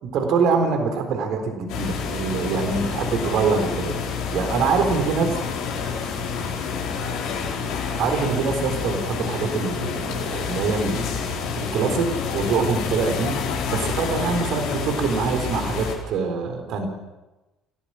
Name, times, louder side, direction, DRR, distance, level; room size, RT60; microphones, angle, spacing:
voice 1, 0.0-4.0 4.3-5.3 8.0-11.1 11.6-16.9, right 5 dB, 50° right, 5 dB, 4.1 m, -24 dB
sound 1, 1.7-15.9, left 5 dB, 55° left, 4.6 m, -28 dB
28.0 x 17.5 x 6.3 m, 1.1 s
figure-of-eight pair, 55°, 0 cm